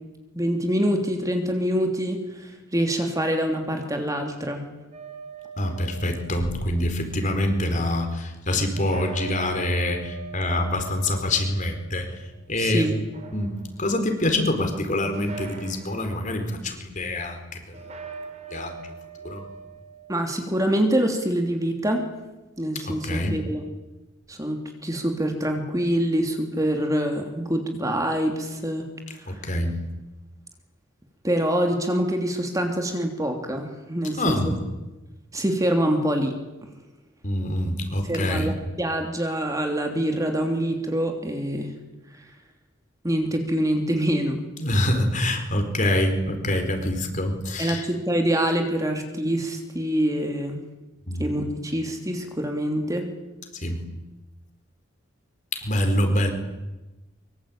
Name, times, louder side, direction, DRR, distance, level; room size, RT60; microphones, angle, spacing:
voice 1, 0.3-4.6 12.6-12.9 20.1-22.1 22.6-23.6 24.3-28.9 31.2-34.4 35.3-36.3 38.1-41.7 43.0-44.4 47.6-50.6 51.2-53.1, equal, 15° right, 4 dB, 3.1 m, -25 dB
sound 1, 4.9-7.0 8.7-12.5 13.0-14.0 15.1-16.2 17.7-20.4, right 5 dB, 35° right, 3.9 m, -41 dB
voice 2, 5.6-12.1 12.5-12.9 13.3-13.5 13.8-17.8 18.5-18.9 19.2-19.4 22.8-23.4 29.3-29.8 34.2-34.6 37.2-38.5 44.6-47.8 51.1-51.3 53.6-53.8 55.5-56.3, left 1 dB, 40° left, 6 dB, 4.6 m, -25 dB
24.5 x 24.5 x 9.1 m, 1.1 s
head